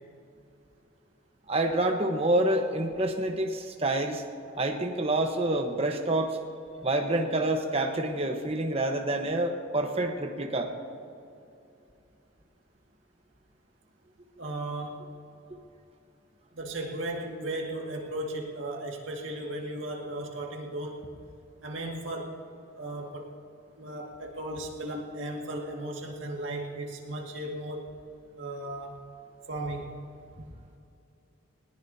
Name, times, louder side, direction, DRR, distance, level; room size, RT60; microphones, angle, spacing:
voice 1, 1.5-4.2 4.5-6.4 6.8-10.7, right 1 dB, 30° right, 4 dB, 1.1 m, -27 dB
voice 2, 14.4-15.0 16.5-21.1 21.6-22.3 22.8-23.3 23.8-27.9 28.4-29.0 29.5-30.0 30.4-30.5, right 1 dB, 65° right, 0 dB, 2.1 m, -36 dB
20.0 x 18.5 x 2.8 m, 2.6 s
head